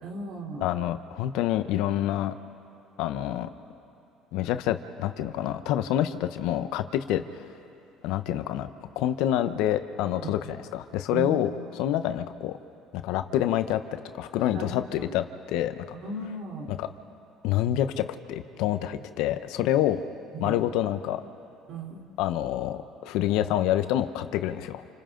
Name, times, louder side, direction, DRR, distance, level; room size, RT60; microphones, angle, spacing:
voice 1, 0.0-0.7 10.2-10.3 11.1-11.4 14.5-14.7 15.9-16.7 20.3-20.6 21.7-22.0, right 3 dB, 65° right, 0 dB, 3.6 m, -36 dB
voice 2, 0.6-2.3 3.0-3.5 4.3-7.4 8.0-8.7 9.0-12.6 12.9-15.7 16.7-16.9 17.4-20.0 20.4-21.2 22.2-24.8, left 12 dB, 75° left, 10 dB, 0.9 m, -27 dB
29.5 x 28.0 x 3.9 m, 2.7 s
supercardioid pair, 80°, 0 cm